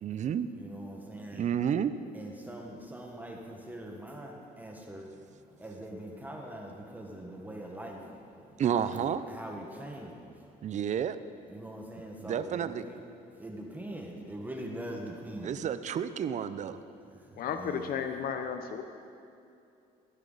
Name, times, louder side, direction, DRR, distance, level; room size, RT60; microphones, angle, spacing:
voice 1, 0.0-0.5 1.3-2.0 8.6-9.2 10.6-11.2 12.2-12.8 15.4-16.8, right 8 dB, 45° right, 12 dB, 0.6 m, -30 dB
voice 2, 0.5-1.5 2.1-5.0 5.6-8.0 8.7-9.0 9.3-10.2 11.5-13.0 13.4-15.5 17.5-17.9, right 1 dB, 10° right, 1 dB, 1.5 m, -42 dB
voice 3, 17.4-18.8, left 7 dB, 60° left, 6 dB, 0.7 m, -33 dB
15.0 x 11.5 x 4.0 m, 2.5 s
cardioid pair, 110°, 17 cm